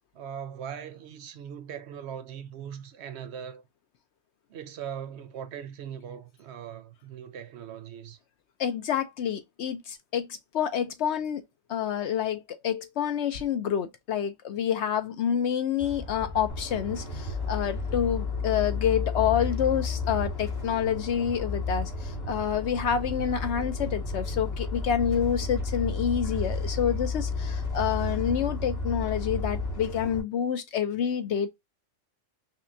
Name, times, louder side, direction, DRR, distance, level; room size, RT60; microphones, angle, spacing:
voice 1, 0.1-3.6 4.5-8.2, right 8 dB, 65° right, 0.8 m, -40 dB
voice 2, 8.6-11.4 11.7-31.5, left 8 dB, 65° left, 0.8 m, -28 dB
sound 1, 15.8-29.7, left 6 dB, 20° left, 0.9 m, -33 dB
sound 2, 16.5-30.2, right 4 dB, 50° left, 2.1 m, -37 dB
5.5 x 2.2 x 2.6 m
omnidirectional pair, 1.3 m